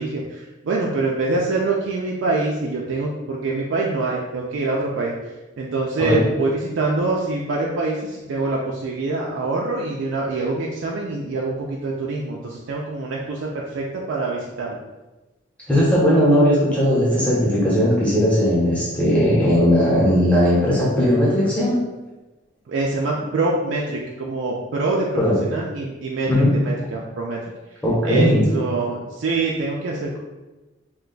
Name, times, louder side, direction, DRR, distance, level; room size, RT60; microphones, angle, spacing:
voice 1, 0.0-5.2 5.6-14.8 22.7-27.4 28.0-30.2, right 3 dB, 80° right, -3 dB, 0.4 m, -25 dB
voice 2, 15.7-21.8 25.2-25.4 26.3-26.5 27.8-28.5, equal, 5° left, -8 dB, 0.9 m, -18 dB
2.5 x 2.2 x 3.8 m, 1.1 s
head